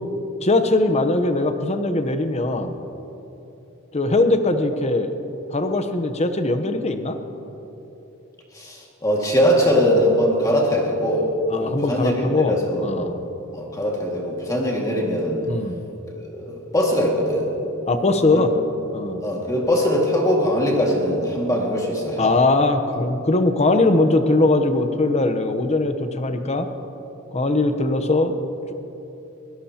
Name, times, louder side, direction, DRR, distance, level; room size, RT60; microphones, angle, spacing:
voice 1, 0.4-2.8 3.9-5.1 5.5-7.2 11.5-12.6 12.8-13.2 15.5-15.8 17.9-18.5 18.9-19.2 22.2-26.7 27.3-28.3, left 2 dB, 30° left, 8 dB, 0.9 m, -20 dB
voice 2, 8.5-11.3 11.6-13.1 13.5-15.4 16.2-17.5 18.3-18.4 19.2-22.3, equal, 15° left, -2 dB, 2.0 m, -21 dB
23.0 x 17.0 x 2.9 m, 3.0 s
head